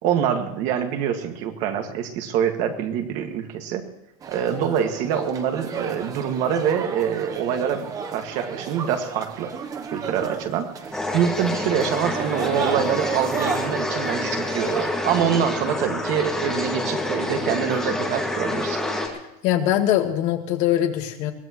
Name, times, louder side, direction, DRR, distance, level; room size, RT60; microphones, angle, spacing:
voice 1, 0.0-3.8 4.3-9.5 9.9-10.7 11.1-18.8, right 8 dB, 40° right, 4 dB, 1.9 m, -25 dB
sound 1, 4.2-14.9, right 6 dB, 20° right, 0.9 m, -33 dB
sound 2, 10.9-19.1, left 1 dB, 5° left, 1.9 m, -27 dB
voice 2, 19.4-21.3, left 12 dB, 40° left, 5 dB, 1.7 m, -22 dB
22.5 x 17.5 x 3.1 m, 0.87 s
supercardioid pair, 180°, 19 cm